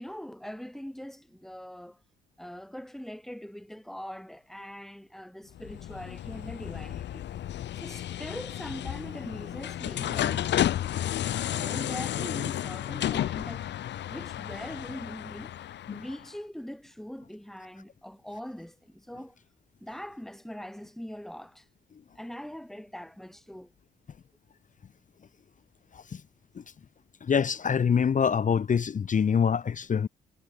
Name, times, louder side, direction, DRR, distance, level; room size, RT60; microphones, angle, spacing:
voice 1, 0.0-2.0 2.4-7.3 7.7-10.5 11.4-13.8 14.1-19.4 19.8-21.7 22.2-23.7, equal, ahead, 1.9 m, -42 dB
sound 1, 5.5-16.3, left 12 dB, 60° left, 0.8 m, -32 dB
voice 2, 27.2-30.1, left 7 dB, 40° left, 1.1 m, -25 dB
cardioid pair, 90°, 20 cm